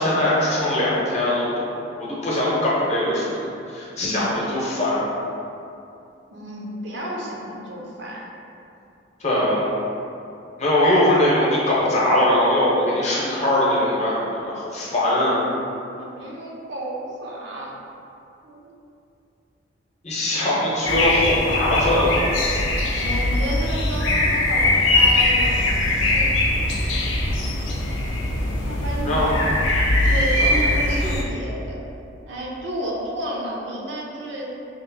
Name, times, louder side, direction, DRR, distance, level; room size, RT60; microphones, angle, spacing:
voice 1, 0.0-1.5 2.0-3.4 3.7-5.0 9.2-9.7 10.6-14.2 14.4-15.4 20.0-22.3 29.1-29.3 30.4-30.5 30.9-31.2, left 1 dB, 35° left, -6 dB, 0.8 m, -21 dB
voice 2, 6.3-8.3 15.9-17.7 18.4-18.7 22.9-25.7 26.1-26.3 28.7-29.5 30.0-31.8 32.3-34.5, right 1 dB, 65° right, -3 dB, 0.6 m, -31 dB
sound 1, 20.9-31.2, left 2 dB, 85° left, 0.5 m, -21 dB
2.9 x 2.5 x 3.9 m, 2.6 s
head